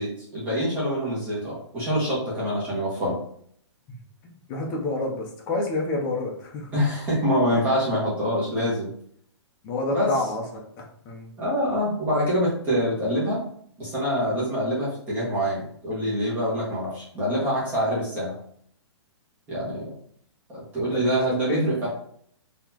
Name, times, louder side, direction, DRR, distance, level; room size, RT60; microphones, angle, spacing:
voice 1, 0.0-3.2 6.7-8.9 9.9-10.1 11.4-13.4 13.8-18.3 19.5-19.8 20.5-21.9, equal, 10° right, -7 dB, 1.3 m, -25 dB
voice 2, 4.5-6.7 7.5-7.6 9.6-10.4 10.8-11.3 20.9-21.8, left 2 dB, 15° left, 0 dB, 0.6 m, -29 dB
4.1 x 2.9 x 2.9 m, 0.64 s
hypercardioid pair, 170°, 15 cm